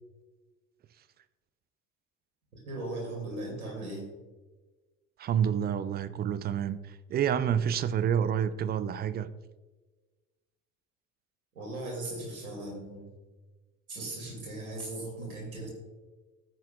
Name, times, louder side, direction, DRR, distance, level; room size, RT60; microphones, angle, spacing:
voice 1, 2.7-4.1 11.5-13.1 13.9-15.7, right 2 dB, 75° right, 2.8 m, -38 dB
voice 2, 5.2-9.3, right 8 dB, 25° right, 0.4 m, -28 dB
13.5 x 7.6 x 2.4 m
figure-of-eight pair, 55°, 43 cm